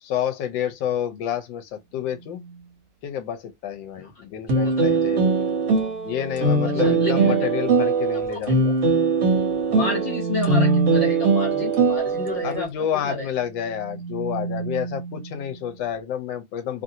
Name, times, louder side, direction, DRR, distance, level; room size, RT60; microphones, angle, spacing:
voice 1, 0.0-2.4 3.0-5.5 6.0-8.8 9.7-9.9 12.4-16.8, left 9 dB, 85° left, 1.4 m, -29 dB
sound 1, 2.2-2.6 5.7-7.6 9.7-11.4 13.4-15.7, right 5 dB, 75° right, 0.6 m, -29 dB
voice 2, 4.5-5.0 6.6-7.5 8.3-8.4 9.7-12.7 13.0-13.3, left 2 dB, 45° left, 1.2 m, -31 dB
sound 2, 4.5-12.6, right 3 dB, 55° right, 1.0 m, -21 dB
3.0 x 2.6 x 2.7 m
omnidirectional pair, 2.0 m